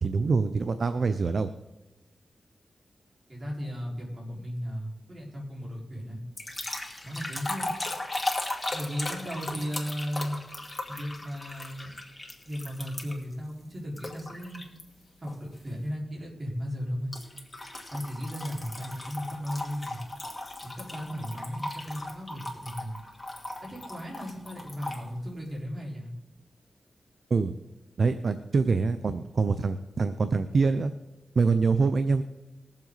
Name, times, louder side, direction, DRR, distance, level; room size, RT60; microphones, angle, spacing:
voice 1, 0.0-1.5 27.3-27.5 28.0-30.9 31.4-32.2, right 4 dB, 70° right, 11 dB, 0.6 m, -25 dB
voice 2, 3.3-6.2 7.0-7.7 8.7-10.4 10.9-11.9 12.4-14.6 15.2-17.1 17.9-20.0 20.6-23.0 23.6-26.1, equal, 45° right, -3 dB, 4.7 m, -36 dB
sound 1, 6.4-13.3 14.0-14.8 15.3-15.6 17.1-25.0, left 2 dB, 25° left, 2.6 m, -37 dB
21.0 x 7.4 x 4.1 m, 1.0 s
cardioid pair, 45°, 0 cm